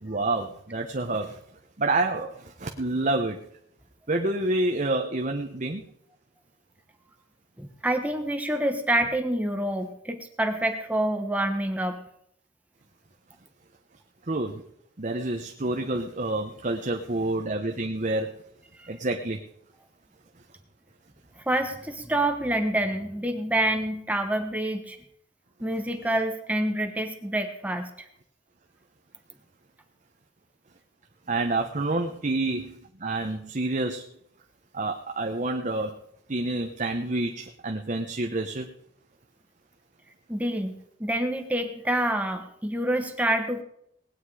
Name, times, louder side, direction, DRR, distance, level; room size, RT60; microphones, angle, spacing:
voice 1, 0.0-1.4 1.8-3.4 4.1-5.8 14.3-14.6 15.0-18.3 18.9-19.4 31.3-34.0 34.7-35.9 36.3-38.7, right 2 dB, 40° right, 3 dB, 1.0 m, -28 dB
voice 2, 7.6-12.0 18.8-18.9 21.4-25.0 25.6-27.9 40.3-43.6, right 1 dB, 10° right, 5 dB, 1.3 m, -27 dB
19.5 x 9.6 x 4.9 m, 0.71 s
head